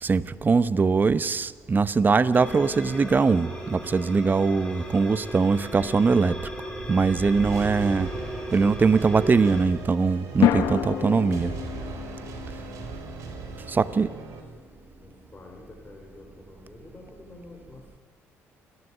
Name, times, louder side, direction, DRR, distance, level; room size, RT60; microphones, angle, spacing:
voice 1, 0.0-6.4 6.9-8.1 8.5-11.5 13.7-14.1, right 4 dB, 35° right, 15 dB, 0.9 m, -22 dB
sound 1, 2.3-9.6, equal, 10° left, 5.5 m, -37 dB
sound 2, 5.2-5.5 10.4-14.7, left 12 dB, 75° left, 1.2 m, -30 dB
sound 3, 5.3-14.4, right 4 dB, 65° right, 4.3 m, -39 dB
voice 2, 13.3-14.3 15.0-18.0, left 3 dB, 25° left, -2 dB, 4.5 m, -49 dB
28.5 x 11.5 x 9.8 m, 1.5 s
supercardioid pair, 70°, 6 cm